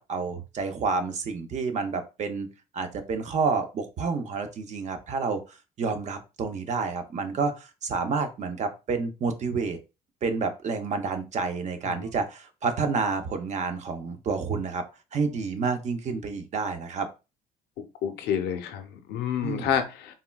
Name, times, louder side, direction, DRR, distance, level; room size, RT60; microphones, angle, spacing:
voice 1, 0.0-2.5 2.7-9.8 10.2-14.8 15.1-17.1 19.4-19.7, right 4 dB, 45° right, 7 dB, 0.6 m, -29 dB
voice 2, 17.8-20.1, left 8 dB, 80° left, 8 dB, 0.5 m, -29 dB
3.6 x 2.1 x 2.2 m, 0.29 s
cardioid pair, 110°, 17 cm